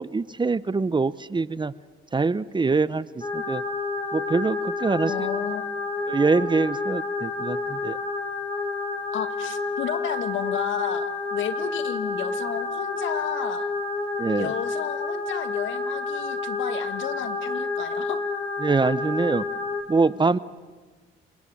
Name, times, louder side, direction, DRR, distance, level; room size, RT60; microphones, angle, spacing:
voice 1, 0.0-1.7 2.1-3.6 4.1-5.1 6.1-8.0 14.2-14.5 18.6-19.4 19.9-20.4, right 4 dB, 25° right, 17 dB, 0.8 m, -24 dB
sound 1, 3.2-19.8, left 3 dB, 25° left, 4.6 m, -29 dB
voice 2, 5.1-5.7 9.1-13.7 14.4-18.2, left 10 dB, 75° left, 11 dB, 1.8 m, -32 dB
28.5 x 20.5 x 8.6 m, 1.3 s
cardioid pair, 90°, 20 cm